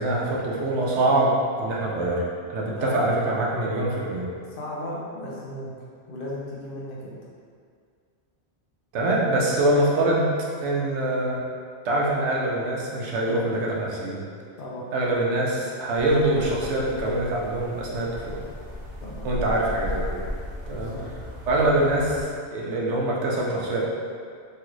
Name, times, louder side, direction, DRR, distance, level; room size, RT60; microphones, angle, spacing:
voice 1, 0.0-4.3 8.9-10.3 10.6-11.4 11.8-14.2 14.9-18.4 19.2-20.2 20.7-20.9 21.4-23.9, right 1 dB, 85° right, -3 dB, 0.9 m, -24 dB
voice 2, 4.5-5.7 6.1-7.1 14.6-14.9 19.0-19.3 20.7-21.1, left 1 dB, 60° left, -5 dB, 0.7 m, -35 dB
sound 1, 15.9-22.2, equal, 55° right, 0.8 m, -36 dB
3.2 x 2.4 x 3.0 m, 2.1 s
omnidirectional pair, 1.2 m